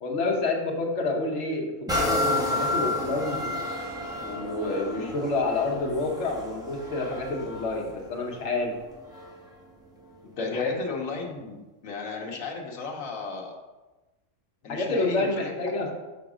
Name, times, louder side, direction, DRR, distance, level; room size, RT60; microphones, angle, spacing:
voice 1, 0.0-3.5 4.2-8.7 10.4-10.8 14.7-15.9, left 3 dB, 60° left, 0 dB, 1.4 m, -28 dB
sound 1, 1.9-9.5 10.1-10.2, left 1 dB, 5° right, 1.0 m, -31 dB
voice 2, 10.4-13.5 14.6-15.5 15.8-15.9, left 4 dB, 90° left, 0 dB, 1.3 m, -35 dB
6.3 x 3.8 x 4.9 m, 1.1 s
omnidirectional pair, 1.3 m